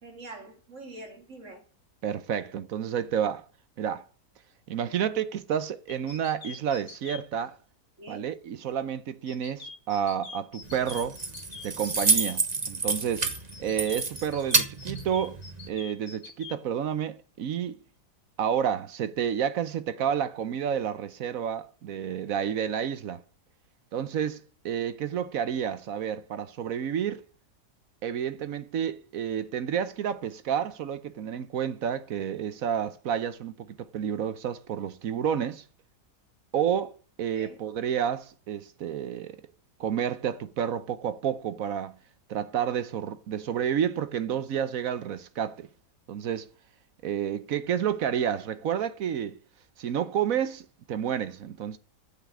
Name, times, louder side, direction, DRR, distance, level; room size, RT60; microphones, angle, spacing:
voice 1, 0.0-1.6 8.0-8.3 37.4-37.6, right 2 dB, 45° right, 2.5 m, -44 dB
voice 2, 2.0-3.4 3.8-4.1 4.7-7.6 8.1-11.2 11.6-13.3 13.6-15.4 15.7-17.8 18.4-23.2 23.9-27.2 28.0-35.6 36.5-36.9 37.2-39.4 39.8-42.0 42.3-45.7 46.1-46.5 47.0-49.4 49.8-51.8, right 8 dB, 65° right, 1.1 m, -30 dB
sound 1, 5.9-7.2 9.3-12.3 13.5-16.6, left 5 dB, 50° left, 1.9 m, -44 dB
Keys jangling, 10.6-15.7, right 3 dB, 25° right, 1.3 m, -29 dB
9.6 x 7.3 x 8.3 m
omnidirectional pair, 1.8 m